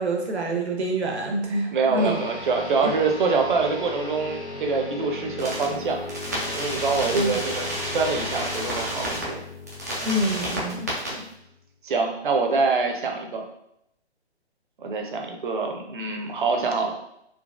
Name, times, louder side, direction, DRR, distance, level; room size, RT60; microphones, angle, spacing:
voice 1, 0.0-2.2 7.1-7.4 10.0-10.9, right 1 dB, 75° right, 2 dB, 0.9 m, -26 dB
voice 2, 1.7-6.0 6.6-9.4 9.9-10.0 11.1-11.2 11.8-13.4 14.8-16.9, right 4 dB, 50° right, 2 dB, 0.7 m, -25 dB
sound 1, 1.9-11.6, left 2 dB, 80° left, 0.9 m, -38 dB
sound 2, 5.4-5.6 6.1-9.2 9.7-11.1, equal, 15° right, 0.3 m, -30 dB
3.9 x 2.8 x 2.4 m, 0.78 s
figure-of-eight pair, 140°, 34 cm